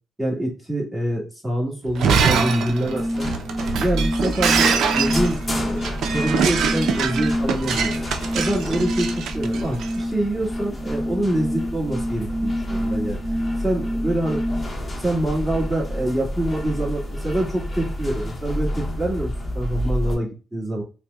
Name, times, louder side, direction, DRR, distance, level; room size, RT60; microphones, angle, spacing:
voice 1, 0.2-3.3 3.7-7.9 8.3-13.2 13.6-14.4 14.9-20.8, right 1 dB, 10° right, -5 dB, 1.5 m, -25 dB
Shatter, 1.9-9.9, right 6 dB, 75° right, 0.4 m, -24 dB
sound 1, 2.3-14.7, equal, 35° right, 0.8 m, -28 dB
sound 2, 2.6-20.1, equal, 25° left, 0.9 m, -30 dB
4.6 x 2.1 x 2.3 m, 0.33 s
cardioid pair, 90°, 0 cm